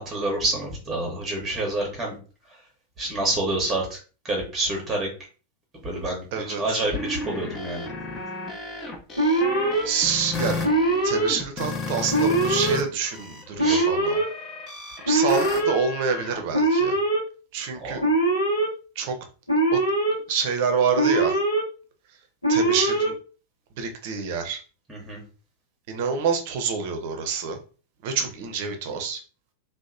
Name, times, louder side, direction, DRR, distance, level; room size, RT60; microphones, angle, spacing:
voice 1, 0.0-2.2 2.5-2.6 3.0-4.0 4.2-5.1 5.8-7.9 13.6-13.9 17.8-18.0 24.9-25.2, right 2 dB, 15° right, -1 dB, 0.8 m, -28 dB
voice 2, 6.3-6.8 9.8-10.6 11.0-14.2 15.1-17.0 17.5-18.0 19.0-19.2 19.7-19.8 20.3-21.4 22.5-23.1 23.8-24.6 25.9-27.6 28.0-29.2, right 6 dB, 50° right, 5 dB, 0.5 m, -27 dB
sound 1, 6.6-12.8 13.1-16.4, left 3 dB, 25° left, 0.6 m, -33 dB
Alarm, 9.2-9.8 10.6-11.3 12.1-12.8 13.6-14.2 15.1-15.7 16.5-17.2 18.0-18.7 19.5-20.1 21.0-21.6 22.4-23.1, right 2 dB, 80° left, 0.7 m, -21 dB
2.8 x 2.1 x 2.4 m, 0.36 s
figure-of-eight pair, 90°, 0 cm